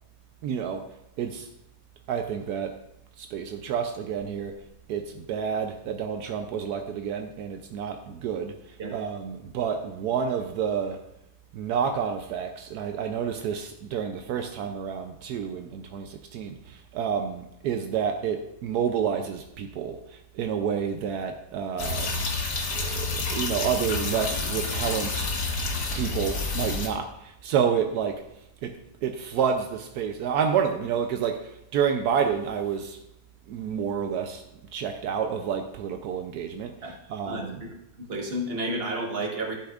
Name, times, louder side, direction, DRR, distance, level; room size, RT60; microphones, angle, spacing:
voice 1, 0.4-0.9 1.2-1.5 2.1-2.8 3.2-4.6 4.9-11.0 11.5-22.1 22.7-25.3 26.0-28.2 28.6-33.0 33.5-34.4 34.7-37.7, right 7 dB, 80° right, 1.2 m, -29 dB
sound 1, 21.8-26.9, left 3 dB, 70° left, 1.8 m, -29 dB
voice 2, 38.0-39.6, right 1 dB, 40° right, 1.6 m, -31 dB
11.5 x 8.8 x 2.4 m
omnidirectional pair, 1.7 m